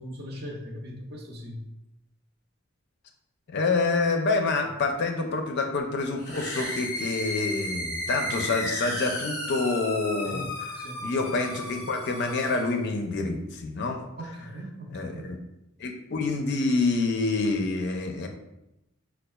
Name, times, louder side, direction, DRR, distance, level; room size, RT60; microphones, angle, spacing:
voice 1, 0.0-1.6 10.2-11.1 14.2-15.3, equal, 50° right, -1 dB, 0.7 m, -39 dB
voice 2, 3.5-14.1 14.9-15.4 15.8-18.3, left 3 dB, 50° left, 4 dB, 0.4 m, -27 dB
sound 1, 6.2-12.7, left 1 dB, 15° left, 0.6 m, -34 dB
5.4 x 2.3 x 2.2 m, 0.88 s
head